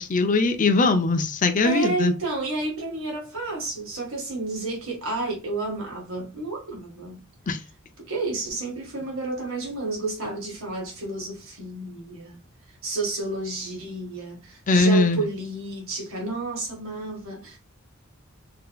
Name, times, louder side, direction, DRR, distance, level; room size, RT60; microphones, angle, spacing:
voice 1, 0.0-2.1 7.5-7.6 14.7-15.2, left 3 dB, 40° left, 0.5 m, -21 dB
voice 2, 1.6-7.2 8.1-12.4 12.8-17.6, right 3 dB, 70° right, 1.6 m, -31 dB
3.8 x 2.8 x 2.3 m
head